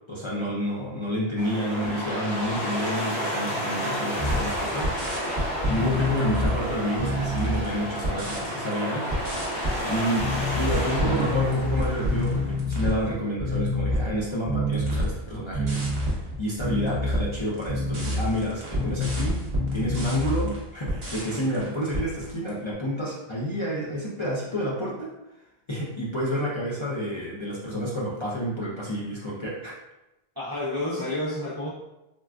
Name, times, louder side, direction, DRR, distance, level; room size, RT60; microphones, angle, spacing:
voice 1, 0.1-4.9 5.7-9.1 9.9-10.2 10.5-15.9 16.4-19.4 19.7-25.1 25.7-29.8, equal, 40° left, -7 dB, 0.5 m, -29 dB
sound 1, 1.4-12.6, equal, 70° left, 1.1 m, -31 dB
sound 2, 4.2-8.8 9.1-22.5, left 1 dB, 45° right, 0.9 m, -28 dB
voice 2, 9.8-10.2 30.4-31.7, left 1 dB, 30° right, -8 dB, 0.5 m, -30 dB
3.7 x 2.3 x 2.4 m, 0.94 s
omnidirectional pair, 1.0 m